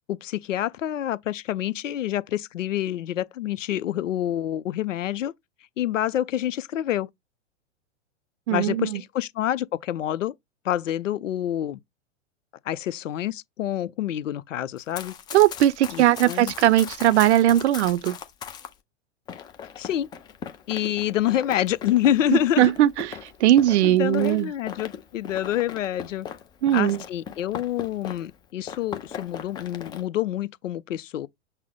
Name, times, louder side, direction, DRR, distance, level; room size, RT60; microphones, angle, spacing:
voice 1, 0.1-5.3 5.8-7.1 8.5-10.3 10.6-11.8 12.7-15.1 15.9-16.5 19.8-20.1 20.7-22.7 23.8-26.3 26.7-31.3, left 12 dB, 85° left, 0.6 m, -27 dB
voice 2, 8.5-9.0 15.3-18.2 22.3-23.1 23.4-24.5 26.6-27.0, right 13 dB, 65° right, 0.5 m, -19 dB
Run, 14.8-18.7 19.3-28.4 28.7-30.0, left 7 dB, 10° left, 0.4 m, -39 dB
5.8 x 2.0 x 3.6 m
hypercardioid pair, 120°, 37 cm